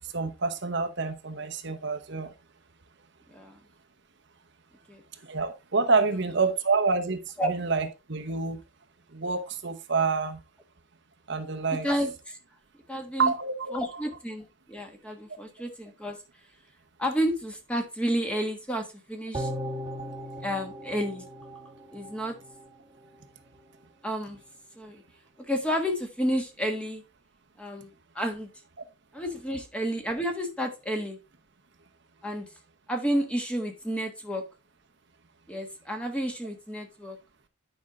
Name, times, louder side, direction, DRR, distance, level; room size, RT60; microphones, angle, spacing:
voice 1, 0.1-2.3 5.2-7.2 7.4-8.6 9.1-10.4 11.3-11.9 13.2-13.7, right 4 dB, 55° right, 1.0 m, -27 dB
voice 2, 11.8-12.4 12.9-13.3 13.7-16.2 17.0-19.5 20.4-21.2 21.9-22.3 24.0-24.4 24.8-25.0 25.5-27.0 27.6-27.9 28.1-28.5 29.1-31.2 32.2-32.5 32.9-34.4 35.5-37.2, equal, 5° left, 1.4 m, -30 dB
sound 1, 19.3-22.7 23.0-23.1, equal, 15° right, 1.3 m, -37 dB
9.8 x 5.5 x 3.7 m
head